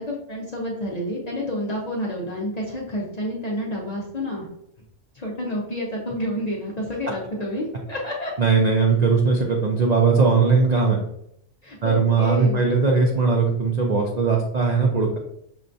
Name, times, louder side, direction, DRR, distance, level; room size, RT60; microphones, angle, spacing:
voice 1, 0.0-4.5 5.1-8.3 11.6-12.6, left 1 dB, 45° left, -2 dB, 0.5 m, -29 dB
voice 2, 8.4-11.0 11.8-15.2, right 4 dB, 65° right, 0 dB, 0.4 m, -19 dB
5.6 x 2.2 x 2.5 m, 0.76 s
omnidirectional pair, 1.3 m